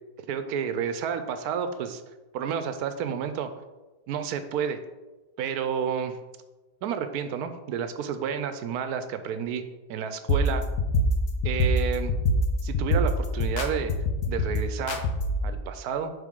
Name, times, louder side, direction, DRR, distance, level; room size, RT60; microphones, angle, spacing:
voice 1, 0.3-2.0 2.3-3.5 4.1-4.8 5.4-6.2 6.8-9.6 9.9-10.6 11.4-12.2 12.6-13.9 14.3-15.0 15.4-16.1, right 7 dB, 75° right, 9 dB, 1.1 m, -30 dB
sound 1, 10.3-15.5, left 1 dB, 80° left, 1.3 m, -25 dB
8.3 x 3.8 x 3.7 m, 1.1 s
omnidirectional pair, 1.7 m